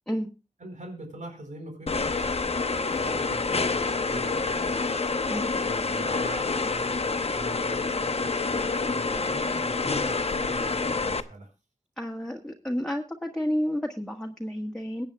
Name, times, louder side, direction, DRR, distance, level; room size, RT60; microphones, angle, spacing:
voice 1, 0.6-2.3 2.9-4.8 5.6-11.5, right 2 dB, 85° right, 3 dB, 4.6 m, -42 dB
sound 1, 1.9-11.2, left 4 dB, 55° left, 0.9 m, -27 dB
voice 2, 12.0-15.1, equal, 5° left, 2 dB, 1.5 m, -30 dB
22.5 x 9.1 x 2.3 m, 0.28 s
wide cardioid pair, 75°, 13 cm